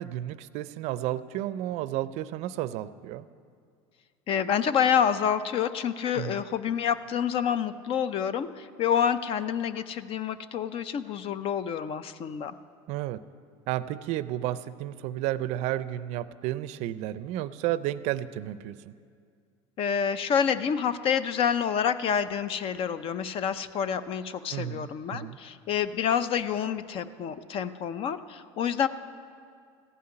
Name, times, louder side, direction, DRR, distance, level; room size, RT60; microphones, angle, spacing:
voice 1, 0.0-3.3 6.1-6.4 12.9-13.2 13.7-18.9 24.5-25.4, right 13 dB, 55° right, 15 dB, 0.5 m, -32 dB
voice 2, 4.3-12.5 19.8-28.9, left 8 dB, 45° left, 14 dB, 0.5 m, -28 dB
15.0 x 5.6 x 9.8 m, 2.2 s
supercardioid pair, 120°, 13 cm